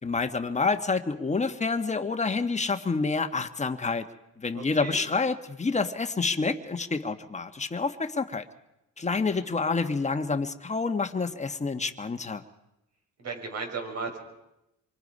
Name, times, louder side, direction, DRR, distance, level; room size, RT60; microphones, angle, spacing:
voice 1, 0.0-4.1 4.4-8.5 9.0-12.4, left 4 dB, 20° left, 8 dB, 1.4 m, -28 dB
voice 2, 4.5-5.0 9.0-9.5 13.2-14.2, right 4 dB, 55° right, 3 dB, 6.6 m, -36 dB
27.5 x 24.0 x 5.5 m, 0.89 s
cardioid pair, 110°, 31 cm